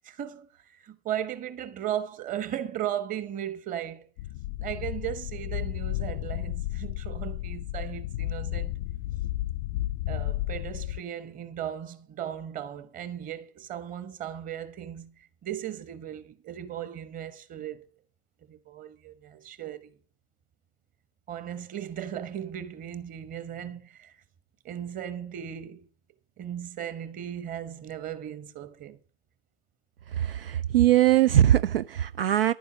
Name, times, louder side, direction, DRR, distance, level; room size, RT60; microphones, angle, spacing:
voice 1, 0.0-4.1 4.6-8.8 10.1-17.8 18.5-20.0 21.3-24.2 24.6-25.9 26.4-29.0, right 10 dB, 25° right, 1.3 m, -36 dB
sound 1, 4.2-11.0, left 15 dB, 45° left, 0.5 m, -32 dB
voice 2, 30.2-32.5, right 12 dB, 65° right, 0.5 m, -21 dB
11.0 x 9.4 x 6.2 m
figure-of-eight pair, 100°, 31 cm